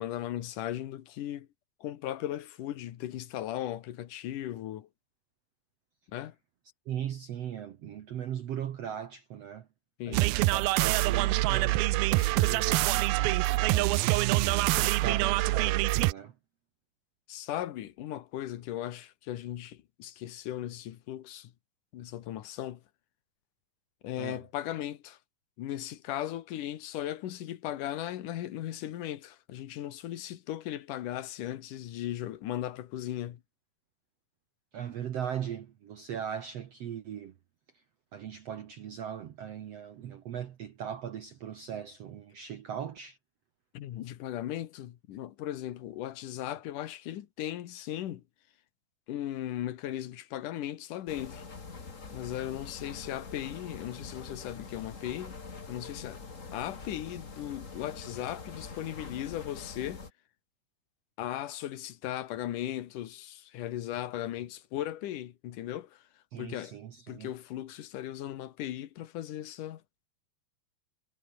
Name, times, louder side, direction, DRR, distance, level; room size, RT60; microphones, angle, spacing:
voice 1, 0.0-1.5 1.8-4.9 6.1-6.4 10.0-10.3 17.3-21.5 21.9-22.8 24.0-25.2 25.6-33.4 43.7-48.2 49.1-51.5 52.1-55.3 55.7-56.2 56.5-60.1 61.2-66.0 66.4-66.8 67.1-69.8, left 12 dB, 65° left, 2.7 m, -37 dB
voice 2, 6.9-9.7 10.1-14.2 14.7-16.3 24.2-24.4 34.7-37.3 38.1-43.2 66.3-67.3, right 9 dB, 60° right, 1.7 m, -39 dB
sound 1, 10.1-16.1, right 19 dB, 80° right, 2.5 m, -25 dB
sound 2, 51.1-60.1, left 4 dB, 25° left, 2.0 m, -45 dB
omnidirectional pair, 4.3 m